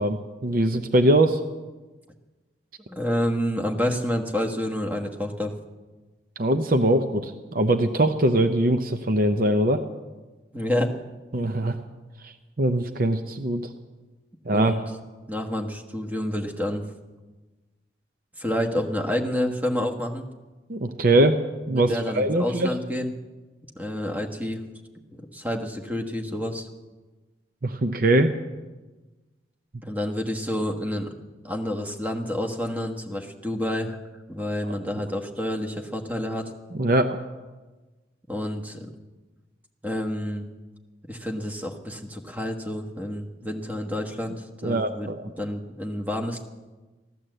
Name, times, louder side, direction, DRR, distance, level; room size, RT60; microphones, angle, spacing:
voice 1, 0.0-1.4 6.4-9.8 11.3-11.8 12.2-12.3 12.6-13.7 14.5-14.7 20.7-21.4 21.7-22.7 27.6-28.3 36.8-37.2 44.6-45.2, right 1 dB, 50° right, 7 dB, 0.7 m, -22 dB
voice 2, 2.9-5.5 10.5-10.9 14.5-14.8 15.3-16.8 18.4-20.2 21.7-23.1 23.7-24.6 25.1-26.7 29.8-31.2 31.4-34.0 34.3-36.5 38.3-38.9 39.8-40.5 41.1-45.1 45.4-46.4, left 1 dB, 10° right, 2 dB, 1.3 m, -29 dB
15.5 x 11.5 x 7.8 m, 1.2 s
head